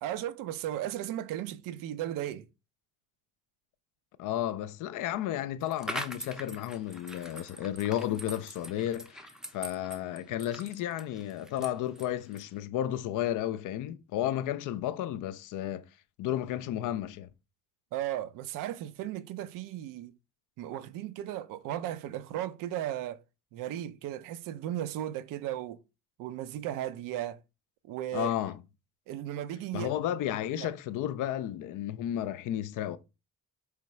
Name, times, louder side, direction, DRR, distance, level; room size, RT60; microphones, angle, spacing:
voice 1, 0.0-2.4 17.9-20.1 20.6-23.2 23.5-25.8 26.2-27.4 27.8-28.3 29.1-29.9 30.6-30.7, right 12 dB, 50° right, 0.5 m, -36 dB
voice 2, 4.2-15.8 16.2-17.3 28.1-28.6 29.7-33.0, left 12 dB, 45° left, 0.5 m, -33 dB
sound 1, 5.6-12.6, equal, ahead, 0.6 m, -43 dB
4.4 x 3.4 x 3.0 m
figure-of-eight pair, 50°, 44 cm